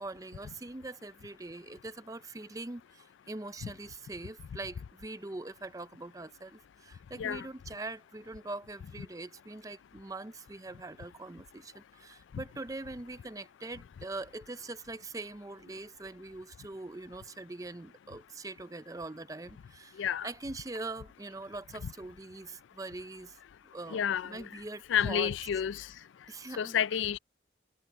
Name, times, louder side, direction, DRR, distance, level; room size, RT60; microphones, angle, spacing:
voice 1, 0.0-23.4 23.7-25.3 25.7-25.8 26.3-26.8, right 2 dB, 20° right, 0.5 m, -43 dB
voice 2, 23.9-24.4 24.9-25.9 26.6-27.2, left 8 dB, 90° left, 0.4 m, -30 dB
head